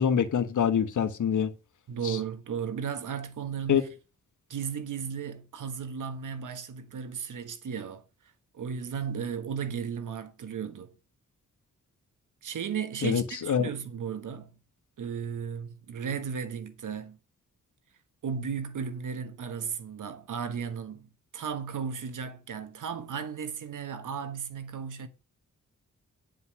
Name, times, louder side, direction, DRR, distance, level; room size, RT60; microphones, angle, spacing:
voice 1, 0.0-1.5 2.0-2.2 3.7-3.8 13.0-13.7, left 8 dB, 70° left, 1.3 m, -25 dB
voice 2, 1.9-3.9 4.5-8.0 8.5-10.9 12.4-14.6 15.0-17.2 18.2-25.1, right 7 dB, 75° right, 1.4 m, -35 dB
9.9 x 5.3 x 6.0 m
wide cardioid pair, 100°, 31 cm